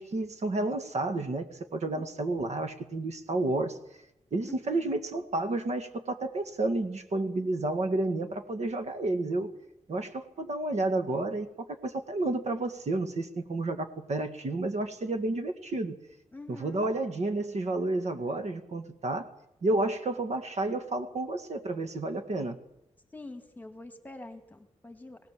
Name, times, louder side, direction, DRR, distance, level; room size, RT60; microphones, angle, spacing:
voice 1, 0.0-3.8 4.3-9.5 9.9-16.0 16.5-19.3 19.6-22.6, right 2 dB, 60° right, 8 dB, 2.0 m, -31 dB
voice 2, 4.5-5.0 16.3-16.8 23.1-25.2, left 2 dB, 15° left, 7 dB, 2.2 m, -45 dB
20.5 x 18.5 x 7.6 m, 0.85 s
wide cardioid pair, 125°, 13 cm